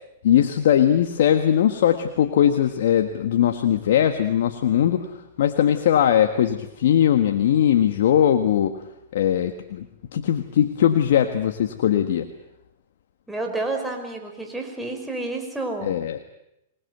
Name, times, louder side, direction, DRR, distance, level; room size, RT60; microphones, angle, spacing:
voice 1, 0.2-8.8 9.1-9.9 10.1-12.3 15.8-16.2, left 10 dB, 70° left, 7 dB, 1.6 m, -20 dB
voice 2, 13.3-15.9, right 2 dB, 5° right, 2 dB, 5.4 m, -30 dB
25.5 x 20.0 x 8.1 m, 0.86 s
hypercardioid pair, 130°, 0 cm